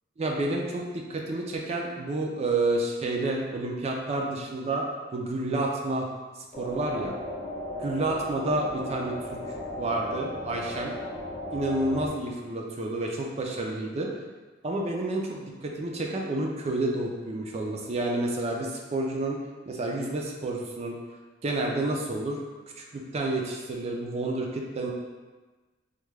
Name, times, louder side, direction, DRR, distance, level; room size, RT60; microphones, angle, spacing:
voice 1, 0.2-4.8 5.1-6.1 6.6-7.1 7.8-9.4 9.8-10.9 11.5-14.1 14.6-19.4 19.7-21.0 21.4-22.4 22.8-24.9, right 2 dB, 35° right, 0 dB, 0.4 m, -29 dB
sound 1, 6.5-12.1, equal, 20° left, 0.6 m, -36 dB
3.5 x 2.2 x 3.2 m, 1.3 s
head